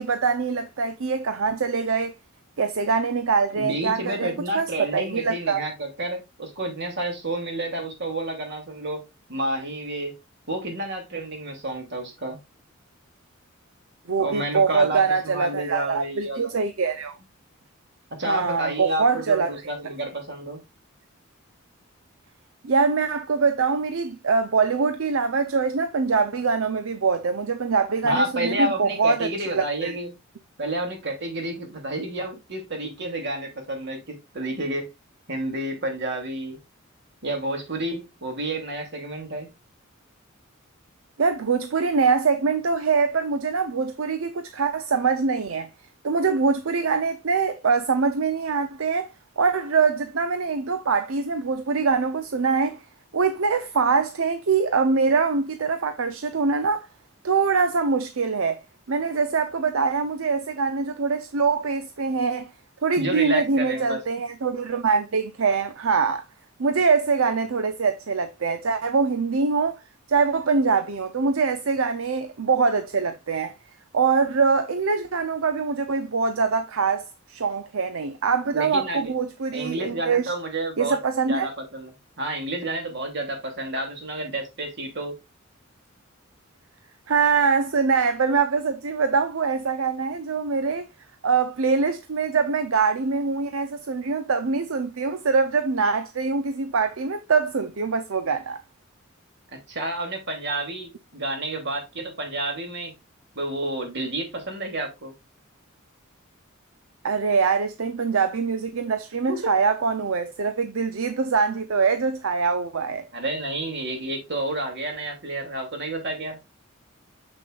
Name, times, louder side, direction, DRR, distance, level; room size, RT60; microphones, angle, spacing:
voice 1, 0.0-2.1 2.6-5.6 14.1-17.2 18.2-19.9 22.6-30.0 41.2-45.7 46.0-49.1 49.4-52.8 53.1-56.9 57.2-62.5 62.8-66.2 66.6-69.8 70.1-73.5 73.9-80.3 80.8-81.5 87.1-90.9 91.2-98.6 107.0-113.1, right 5 dB, 75° right, 0.6 m, -23 dB
voice 2, 3.6-9.0 9.3-10.2 10.5-12.4 14.2-16.5 18.2-20.6 28.0-30.1 30.6-34.9 35.3-36.6 37.2-39.5 63.0-64.0 78.5-79.1 79.5-81.0 81.3-81.9 82.2-85.1 99.7-102.9 103.3-105.1 109.3-109.5 113.1-116.4, right 1 dB, 55° right, 2.8 m, -30 dB
7.1 x 6.4 x 2.4 m
head